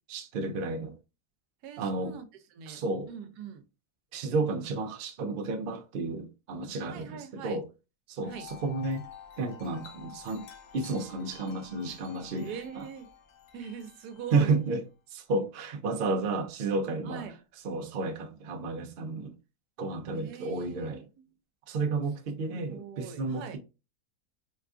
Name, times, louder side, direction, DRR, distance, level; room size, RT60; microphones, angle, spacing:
voice 1, 0.1-0.9 1.8-2.2 2.7-3.1 4.1-7.6 8.1-9.0 9.4-10.5 10.7-12.9 14.3-14.8 15.1-17.3 17.6-19.3 19.8-21.0 21.7-23.6, right 3 dB, 60° right, 0.5 m, -31 dB
voice 2, 1.6-2.8 3.1-3.6 6.9-7.6 8.3-8.5 12.4-13.1 13.5-14.6 17.0-17.4 20.1-21.0 22.5-23.6, right 7 dB, 90° right, 1.2 m, -42 dB
Wind chime, 8.2-14.7, left 8 dB, 85° left, 1.1 m, -50 dB
4.3 x 2.3 x 2.4 m
omnidirectional pair, 1.6 m